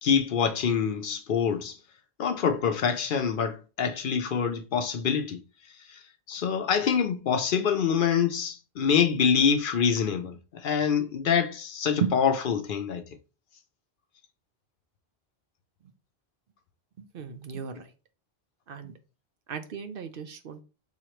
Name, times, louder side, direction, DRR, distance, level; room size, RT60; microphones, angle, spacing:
voice 1, 0.0-1.8 2.2-5.4 5.9-6.0 6.3-13.0, left 7 dB, 60° left, 0.7 m, -25 dB
voice 2, 17.1-17.7 18.7-18.9 19.5-20.6, right 7 dB, 65° right, 0.8 m, -33 dB
5.6 x 3.1 x 2.9 m
omnidirectional pair, 1.0 m